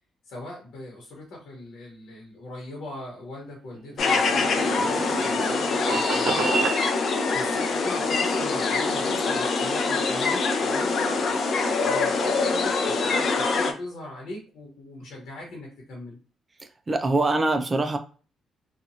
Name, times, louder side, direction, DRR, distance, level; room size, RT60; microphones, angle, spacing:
voice 1, 0.3-6.6 7.3-16.2, left 1 dB, 70° left, 1.1 m, -40 dB
sound 1, 3.7-6.8, right 3 dB, 80° right, 0.7 m, -29 dB
sound 2, 4.0-13.7, left 4 dB, 55° left, 0.5 m, -24 dB
voice 2, 16.9-18.0, right 2 dB, 30° right, 0.5 m, -23 dB
2.8 x 2.4 x 2.6 m
cardioid pair, 90°, 0 cm